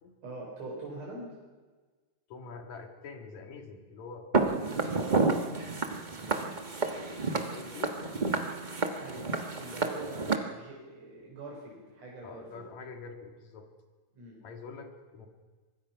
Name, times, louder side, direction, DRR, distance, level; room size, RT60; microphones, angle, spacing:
voice 1, 0.2-1.3 5.0-5.5 9.0-12.5 14.1-14.4, right 2 dB, 65° right, -3 dB, 5.3 m, -43 dB
voice 2, 2.3-4.3 4.6-4.7 6.2-8.1 12.2-13.7 14.4-15.3, left 4 dB, 70° left, 4 dB, 3.4 m, -46 dB
Walk footsteps, 4.3-10.4, right 3 dB, 50° right, 0.5 m, -30 dB
24.5 x 21.0 x 5.7 m, 1.4 s
omnidirectional pair, 3.3 m